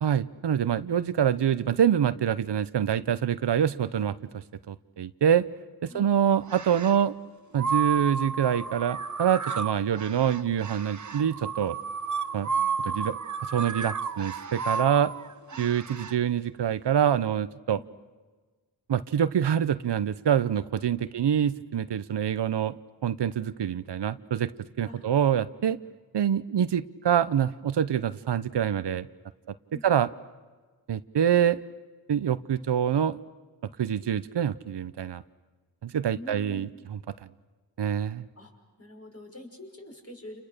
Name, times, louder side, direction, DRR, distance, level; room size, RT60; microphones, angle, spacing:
voice 1, 0.0-5.4 5.8-7.1 7.5-11.8 12.3-12.5 12.8-13.2 13.5-15.1 15.6-17.8 18.9-24.5 24.8-25.8 26.1-29.1 29.8-30.1 30.9-31.6 32.1-33.2 33.8-35.2 35.8-37.0 37.8-38.2, right 9 dB, 75° right, 14 dB, 0.8 m, -25 dB
sound 1, 6.4-7.0 7.5-16.1, right 5 dB, 45° right, 1.0 m, -32 dB
voice 2, 36.1-36.7 38.3-38.5 38.8-40.4, left 1 dB, 35° left, 2 dB, 5.9 m, -45 dB
30.0 x 29.5 x 6.7 m, 1.4 s
wide cardioid pair, 95°, 42 cm